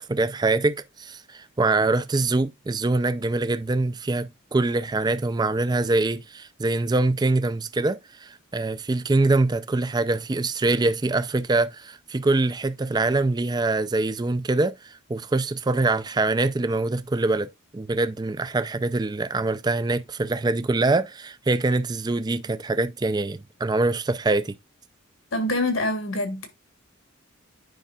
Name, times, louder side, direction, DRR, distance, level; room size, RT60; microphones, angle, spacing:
voice 1, 0.0-24.5, right 2 dB, 20° right, 0.4 m, -24 dB
voice 2, 25.3-26.5, left 1 dB, 75° left, 1.9 m, -25 dB
9.9 x 5.2 x 2.3 m
head